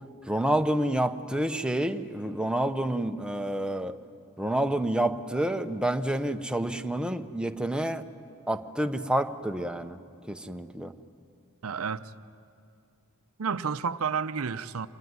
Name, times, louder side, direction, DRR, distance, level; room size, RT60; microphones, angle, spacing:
voice 1, 0.3-4.0 4.4-8.0 8.5-10.0 10.3-10.9, right 1 dB, 5° right, 0.7 m, -28 dB
voice 2, 11.6-12.1 13.4-14.9, right 6 dB, 70° right, 0.7 m, -30 dB
26.5 x 19.5 x 9.5 m
head